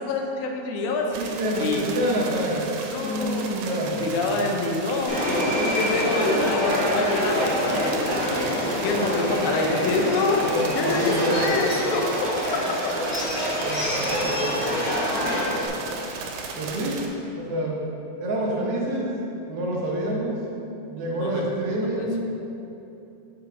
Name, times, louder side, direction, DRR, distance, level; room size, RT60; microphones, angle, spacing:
voice 1, 0.0-1.1 1.6-1.8 2.9-3.6 4.0-8.5 8.8-10.4 10.7-12.0 21.1-21.4 22.0-22.2, left 3 dB, 80° left, 1 dB, 2.1 m, -26 dB
sound 1, 1.1-17.1, right 4 dB, 90° right, 2.1 m, -35 dB
voice 2, 1.2-2.7 2.9-4.5 10.4-11.5 13.6-14.7 16.6-17.1 17.3-17.8 18.2-19.2 19.5-20.5 20.9-22.2, right 1 dB, 70° right, -3 dB, 1.5 m, -27 dB
Subway metro underground, 5.1-15.7, left 1 dB, 50° left, 1.4 m, -26 dB
6.9 x 4.1 x 4.8 m, 2.9 s
omnidirectional pair, 3.5 m